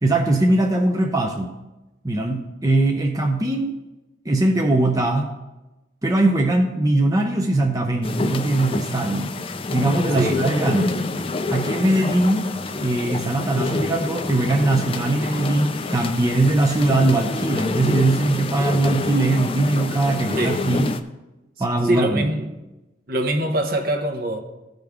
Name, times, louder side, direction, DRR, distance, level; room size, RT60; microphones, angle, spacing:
voice 1, 0.0-1.5 2.0-3.7 4.2-5.3 6.0-9.3 9.7-11.0 11.5-20.9 21.6-22.3, right 2 dB, 20° right, 0.6 m, -21 dB
sound 1, 8.0-21.0, left 3 dB, 30° left, 0.4 m, -27 dB
voice 2, 21.8-22.5 23.1-24.4, right 1 dB, 50° right, 1.0 m, -23 dB
15.0 x 5.2 x 3.6 m
head